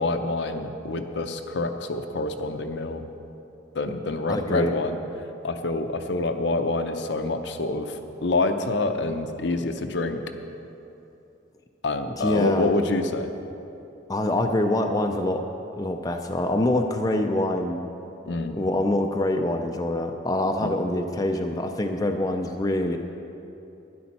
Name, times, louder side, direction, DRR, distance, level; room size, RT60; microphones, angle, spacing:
voice 1, 0.0-3.1 3.7-5.0 5.4-10.2 11.8-13.3 18.3-18.6 20.6-20.7 22.1-22.2, left 2 dB, 65° left, 7 dB, 0.6 m, -27 dB
voice 2, 4.3-4.7 12.2-12.7 14.1-15.4 15.8-17.8 18.5-23.0, left 1 dB, 20° left, 4 dB, 0.4 m, -25 dB
12.0 x 10.5 x 4.2 m, 2.8 s
head